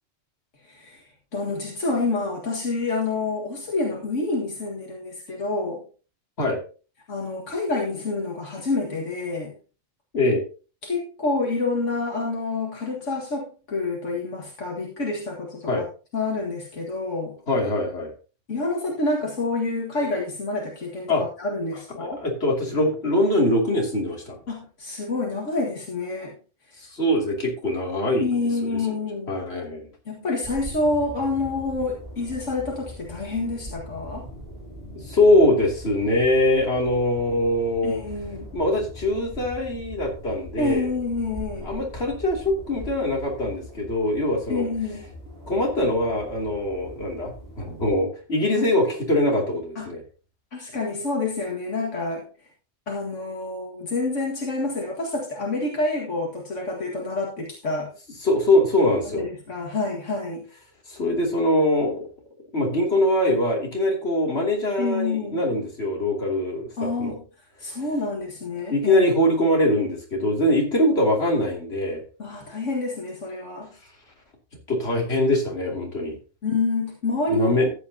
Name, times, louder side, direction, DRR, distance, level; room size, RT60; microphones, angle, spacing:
voice 1, 0.6-5.8 7.1-9.5 10.8-15.8 16.1-17.4 18.5-22.2 24.5-26.4 28.2-29.4 30.1-34.3 37.8-38.5 40.6-41.7 44.5-45.0 48.6-48.7 49.8-49.9 50.5-52.2 52.9-57.9 59.2-60.5 64.8-65.4 66.8-69.1 72.2-73.7 76.4-77.7, left 3 dB, 80° left, -1 dB, 2.2 m, -28 dB
voice 2, 17.5-18.1 21.1-21.2 22.0-24.4 26.8-28.3 28.7-28.8 29.3-29.9 35.1-38.0 38.5-40.9 41.6-44.6 45.5-50.0 58.2-59.3 60.9-62.1 62.5-67.1 68.7-72.0 74.7-76.2 77.3-77.7, left 1 dB, 55° left, -1 dB, 3.1 m, -22 dB
sound 1, 30.4-48.0, equal, 30° right, 6.0 m, -41 dB
14.0 x 9.1 x 2.8 m, 0.35 s
omnidirectional pair, 1.3 m